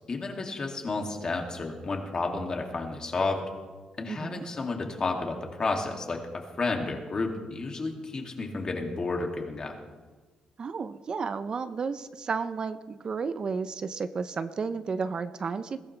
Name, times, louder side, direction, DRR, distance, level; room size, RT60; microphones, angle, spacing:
voice 1, 0.1-3.4 4.0-9.7, left 3 dB, 35° left, 2 dB, 2.6 m, -31 dB
voice 2, 4.1-4.5 10.6-15.8, right 5 dB, 40° right, 12 dB, 0.7 m, -32 dB
21.0 x 15.5 x 3.4 m, 1.4 s
cardioid pair, 110°, 2 cm